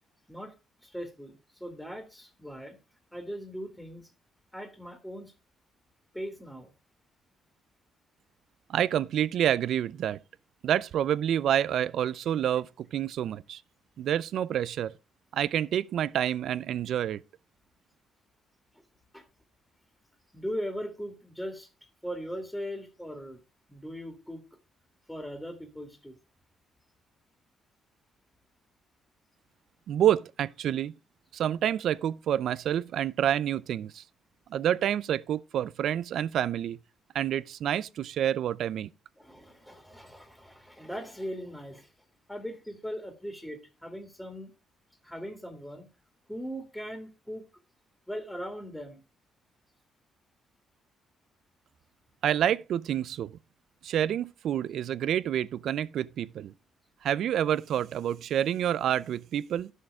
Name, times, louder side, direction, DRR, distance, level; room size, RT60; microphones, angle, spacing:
voice 1, 0.8-2.8 3.1-4.1 4.5-5.3 6.1-6.7 19.1-19.3 20.3-21.7 22.0-23.4 23.7-24.4 25.1-26.2 39.2-41.9 42.3-44.5 45.0-45.9 46.3-47.4 48.1-49.0, equal, 5° left, 2.1 m, -39 dB
voice 2, 8.7-10.2 10.6-13.6 14.0-14.9 15.3-17.2 29.9-30.9 31.3-34.0 34.5-36.8 37.1-38.9 52.2-53.4 53.8-56.5 57.0-59.7, right 10 dB, 70° right, 0.5 m, -28 dB
11.5 x 6.5 x 4.8 m
cardioid pair, 90°, 0 cm